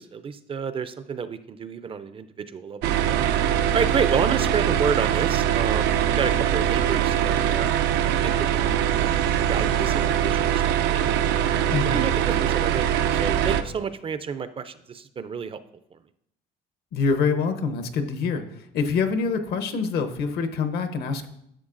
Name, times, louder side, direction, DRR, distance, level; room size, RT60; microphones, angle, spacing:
voice 1, 0.0-3.2 3.7-7.7 8.2-9.1 9.5-11.5 11.8-15.6, right 6 dB, 30° right, 12 dB, 0.4 m, -30 dB
sound 1, 2.8-13.6, right 10 dB, 90° right, 0.5 m, -22 dB
voice 2, 11.7-12.0 16.9-21.3, left 5 dB, 70° left, 8 dB, 0.9 m, -25 dB
11.0 x 6.8 x 2.5 m, 0.75 s
cardioid pair, 110°, 17 cm